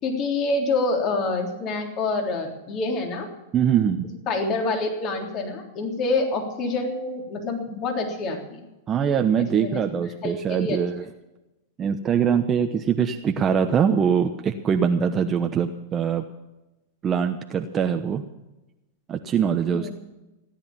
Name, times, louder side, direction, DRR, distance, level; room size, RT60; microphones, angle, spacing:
voice 1, 0.0-3.3 4.3-8.6 9.4-9.8 10.2-10.8 19.7-19.9, left 3 dB, 40° left, 2 dB, 3.5 m, -27 dB
voice 2, 3.5-4.1 8.9-11.0 11.8-16.2 17.0-18.2 19.1-19.9, right 7 dB, 30° right, 6 dB, 1.0 m, -23 dB
17.0 x 10.5 x 7.3 m, 1.0 s
hypercardioid pair, 110°, 0 cm